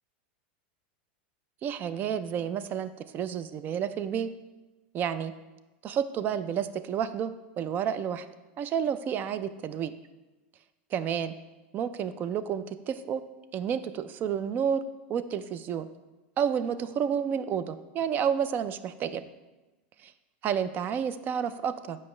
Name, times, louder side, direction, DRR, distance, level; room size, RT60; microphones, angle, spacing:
voice 1, 1.6-4.3 4.9-5.3 5.8-7.3 7.6-8.3 8.6-9.9 10.9-11.3 11.7-13.2 13.5-14.8 15.1-15.9 16.4-19.2 20.0-20.1 20.4-22.0, right 8 dB, 30° right, 13 dB, 0.3 m, -30 dB
7.8 x 5.2 x 3.2 m, 1.1 s
supercardioid pair, 130°, 6 cm